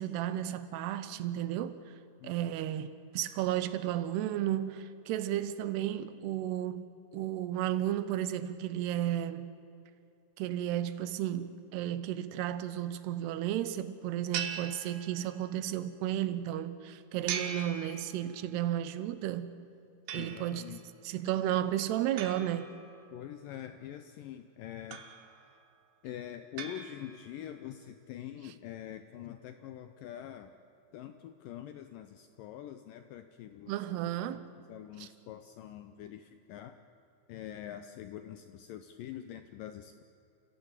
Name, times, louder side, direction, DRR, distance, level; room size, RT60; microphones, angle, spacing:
voice 1, 0.0-1.8 2.2-9.5 10.4-19.5 20.1-20.6 21.0-22.7 28.4-28.5 33.7-34.5 35.0-35.1, right 12 dB, 80° right, 13 dB, 2.9 m, -33 dB
sound 1, 14.3-15.6 17.3-18.6 20.1-20.8 22.2-23.3 24.9-25.6 26.6-27.5, right 7 dB, 65° right, 2.2 m, -41 dB
voice 2, 20.1-20.8 23.1-25.1 26.0-30.5 30.9-33.8 34.3-34.4 34.7-36.8 37.3-40.0, left 11 dB, 85° left, 9 dB, 1.9 m, -45 dB
29.0 x 16.5 x 8.2 m, 2.7 s
omnidirectional pair, 4.9 m